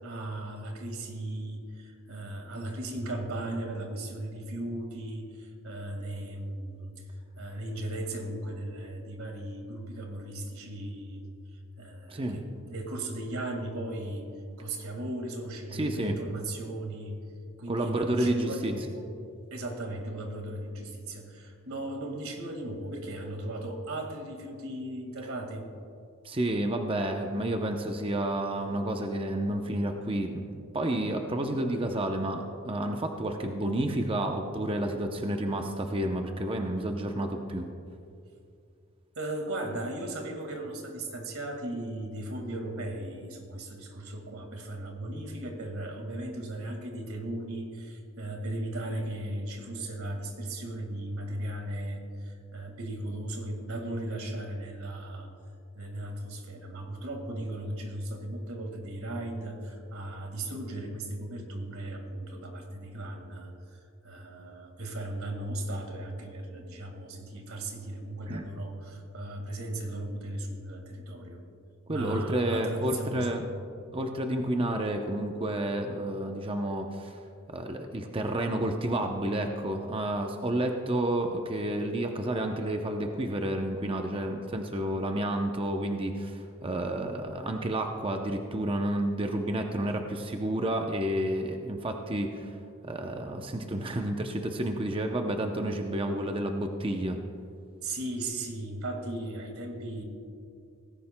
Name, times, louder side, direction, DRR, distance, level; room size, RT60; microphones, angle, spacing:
voice 1, 0.0-6.9 7.4-11.2 11.5-14.3 14.6-17.2 17.6-19.0 19.5-25.7 39.2-55.3 55.8-71.4 71.9-73.4 97.8-100.0, right 1 dB, 85° right, 3 dB, 1.9 m, -37 dB
voice 2, 15.7-16.1 17.7-18.7 26.2-30.5 30.7-37.7 68.3-68.4 71.9-73.4 73.9-77.2 77.5-92.5 92.8-97.2, right 1 dB, 25° right, 4 dB, 0.6 m, -30 dB
18.0 x 16.0 x 2.2 m, 2.5 s
head